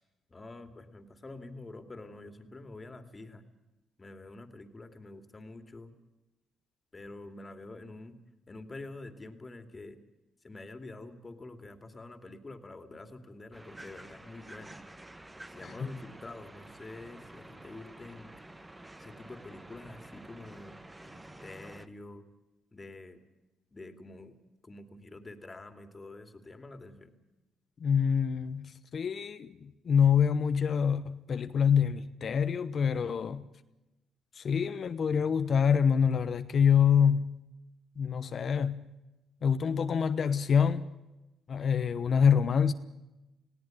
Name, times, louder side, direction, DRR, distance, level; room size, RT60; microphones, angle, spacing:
voice 1, 0.3-3.4 4.0-5.9 6.9-8.1 8.5-10.0 10.4-14.8 15.5-18.3 19.0-20.8 21.0-22.2 22.7-23.2 23.7-24.4 24.6-27.1, left 2 dB, 25° left, 2.5 m, -47 dB
sound 1, 13.5-21.9, right 1 dB, 15° right, 1.3 m, -50 dB
voice 2, 27.8-33.4 34.4-37.3 38.0-38.9 39.4-40.9 41.5-42.7, left 7 dB, 50° left, 1.0 m, -26 dB
19.5 x 17.0 x 9.1 m
cardioid pair, 90°, 0 cm